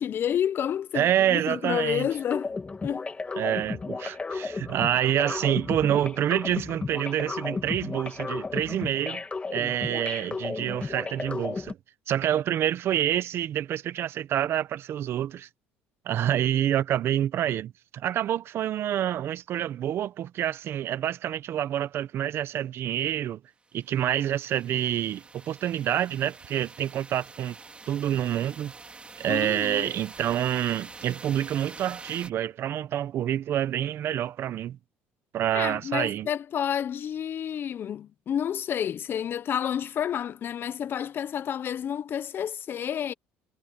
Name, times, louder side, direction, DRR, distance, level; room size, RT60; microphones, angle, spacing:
voice 1, 0.0-2.5 2.8-3.1 29.3-29.9 35.5-43.1, left 9 dB, 50° left, 0.9 m, -30 dB
voice 2, 0.9-2.1 3.4-9.2 9.5-11.8 12.1-15.5 16.0-23.4 23.7-27.6 27.9-28.7 29.2-34.8 35.3-36.3, right 11 dB, 55° right, 1.3 m, -27 dB
sound 1, 2.1-11.7, left 4 dB, 25° left, 2.6 m, -34 dB
sound 2, 23.7-32.3, right 3 dB, 25° right, 4.0 m, -46 dB
supercardioid pair, 80°, 5 cm